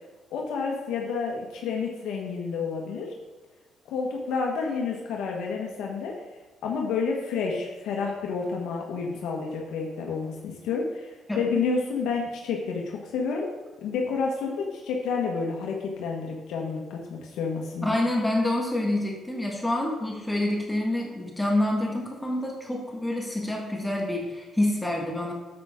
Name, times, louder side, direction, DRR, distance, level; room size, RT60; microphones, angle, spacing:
voice 1, 0.3-3.1 3.9-6.2 6.6-13.5 13.8-18.0, left 5 dB, 85° left, 0 dB, 1.3 m, -30 dB
voice 2, 17.8-25.3, left 1 dB, 10° left, 0 dB, 1.6 m, -27 dB
8.9 x 7.6 x 3.7 m, 1.3 s
cardioid pair, 90°, 0 cm